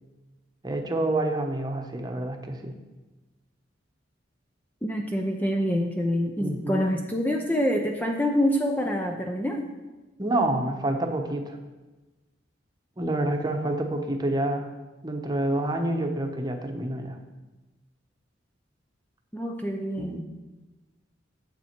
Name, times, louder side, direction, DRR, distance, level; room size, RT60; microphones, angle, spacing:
voice 1, 0.6-2.7 6.4-6.9 10.2-11.6 13.0-14.7 15.0-17.2 20.0-20.2, right 1 dB, 20° right, 3 dB, 1.0 m, -28 dB
voice 2, 4.8-9.7 19.3-20.2, equal, 10° left, 2 dB, 0.6 m, -26 dB
10.5 x 7.7 x 4.5 m, 1.2 s
head